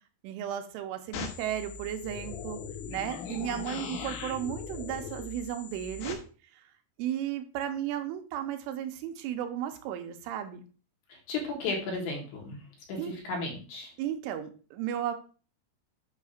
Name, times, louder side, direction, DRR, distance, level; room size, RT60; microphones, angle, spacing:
voice 1, 0.2-2.6 2.9-6.2 6.5-6.6 7.0-10.6 13.0-13.1 14.0-15.2, right 10 dB, 80° right, 7 dB, 3.2 m, -34 dB
sound 1, 1.1-6.1, left 7 dB, 85° left, 4.0 m, -40 dB
voice 2, 11.3-12.6 12.9-13.9, left 3 dB, 65° left, 0 dB, 3.6 m, -34 dB
8.6 x 3.2 x 6.4 m, 0.37 s
omnidirectional pair, 5.7 m